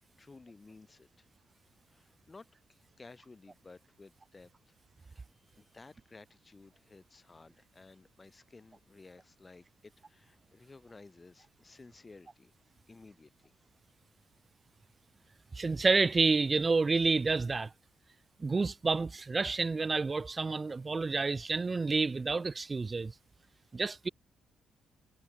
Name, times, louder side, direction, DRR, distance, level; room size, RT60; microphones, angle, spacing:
voice 1, 0.2-1.3 1.9-12.5 12.9-13.5, left 3 dB, 25° left, 1.8 m, -56 dB
voice 2, 15.5-17.7 18.4-23.1 23.7-24.1, right 4 dB, 30° right, 0.3 m, -29 dB
cardioid pair, 90°, 0 cm